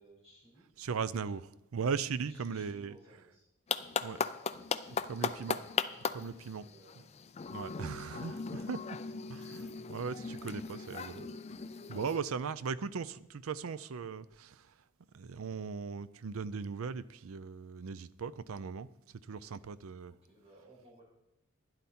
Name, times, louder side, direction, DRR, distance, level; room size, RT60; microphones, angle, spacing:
voice 1, 0.0-0.8 1.2-1.3 2.2-3.5 6.4-7.0 7.6-9.0 19.3-19.6 20.0-21.0, right 1 dB, 30° right, 5.4 m, -61 dB
voice 2, 0.8-3.2 4.0-4.2 5.0-5.6 6.1-6.7 7.5-9.0 9.3-11.3 11.9-14.6 15.1-18.9 19.3-20.1, right 5 dB, 80° right, 0.5 m, -38 dB
sound 1, 3.7-12.2, left 5 dB, 30° left, 0.4 m, -38 dB
12.0 x 10.5 x 4.3 m
head